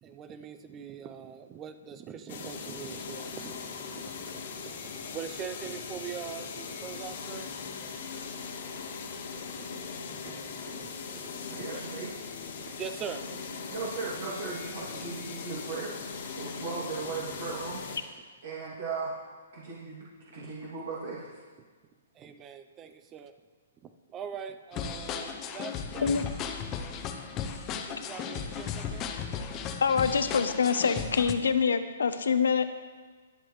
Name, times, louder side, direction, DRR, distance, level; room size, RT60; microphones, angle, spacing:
voice 1, 0.0-3.7 4.0-7.6 9.4-9.6 10.1-11.6 12.8-13.4 20.4-20.5 21.6-21.7 22.1-23.3 23.8-26.2 27.8-29.4, right 8 dB, 20° right, 9 dB, 0.6 m, -43 dB
sound 1, 2.3-18.0, left 5 dB, 55° left, 1.7 m, -40 dB
voice 2, 11.5-12.1 13.7-16.0 16.4-17.8 18.4-19.1 19.5-20.1 20.3-21.3, right 4 dB, 65° right, -6 dB, 2.6 m, -37 dB
sound 2, 24.7-31.3, left 7 dB, 25° left, 0.8 m, -36 dB
voice 3, 29.8-32.7, left 6 dB, 90° left, 10 dB, 0.9 m, -25 dB
21.5 x 7.7 x 3.2 m, 1.4 s
hypercardioid pair, 155°, 0 cm